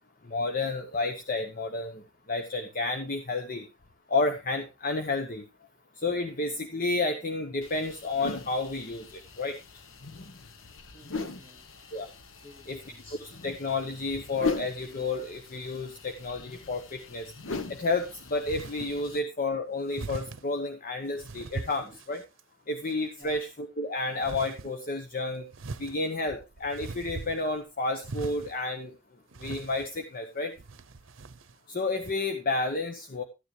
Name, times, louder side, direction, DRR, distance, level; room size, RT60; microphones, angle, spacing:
voice 1, 0.3-2.0 2.3-3.6 4.1-5.4 6.0-9.6 11.9-12.1 12.7-12.8 13.2-17.3 17.7-22.2 22.7-25.4 25.8-28.9 29.4-30.5 31.7-33.2, left 3 dB, 45° left, 6 dB, 1.0 m, -31 dB
sound 1, 7.6-19.2, left 4 dB, 75° left, 1.1 m, -40 dB
voice 2, 10.9-12.0 12.4-13.2 19.0-19.2 21.9-22.0 23.2-23.4, left 1 dB, 25° left, 3 dB, 2.8 m, -53 dB
sound 2, 18.4-18.9 19.9-20.4 21.2-22.4 22.9-23.4 24.2-24.7 25.5-27.6 28.0-28.6 29.3-30.0 30.6-31.5 32.0-32.1, right 3 dB, 80° right, 0.7 m, -40 dB
13.0 x 9.6 x 3.2 m, 0.26 s
head